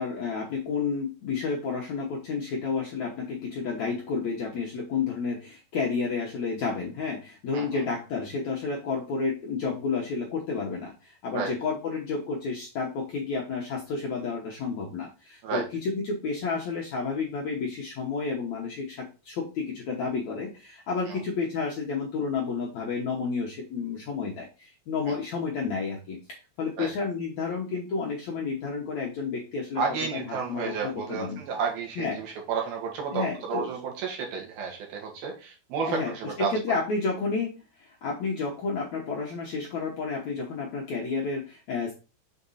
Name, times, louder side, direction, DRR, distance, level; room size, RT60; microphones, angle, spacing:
voice 1, 0.0-26.2 26.6-29.8 30.1-31.4 32.0-32.2 33.1-33.7 35.8-41.9, left 4 dB, 65° left, -2 dB, 1.8 m, -31 dB
voice 2, 29.8-36.5, right 5 dB, 65° right, 0 dB, 3.3 m, -31 dB
7.2 x 4.4 x 4.1 m, 0.31 s
omnidirectional pair, 4.8 m